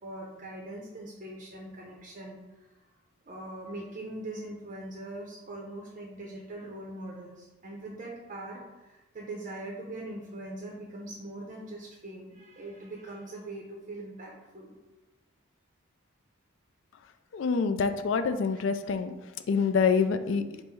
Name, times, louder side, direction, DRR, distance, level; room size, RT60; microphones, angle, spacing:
voice 1, 0.0-2.8 3.3-14.7, right 1 dB, 35° right, -2 dB, 0.6 m, -42 dB
voice 2, 17.3-19.1 19.5-20.4, left 5 dB, 60° left, 9 dB, 0.3 m, -26 dB
5.4 x 2.0 x 4.4 m, 1.1 s
head